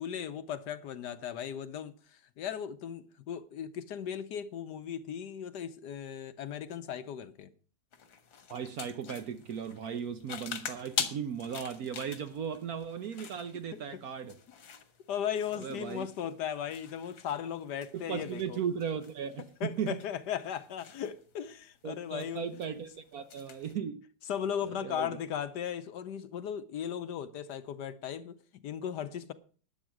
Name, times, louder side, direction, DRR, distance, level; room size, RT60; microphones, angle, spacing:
voice 1, 0.0-7.5 13.7-14.0 15.1-18.6 19.4-22.5 24.3-29.3, left 9 dB, 65° left, 1.3 m, -37 dB
sound 1, 7.9-23.7, left 7 dB, 85° left, 2.2 m, -44 dB
voice 2, 8.5-14.4 15.5-16.1 17.9-20.0 21.8-24.0 24.6-25.2, right 7 dB, 60° right, 1.1 m, -37 dB
12.0 x 9.1 x 6.3 m
omnidirectional pair, 2.1 m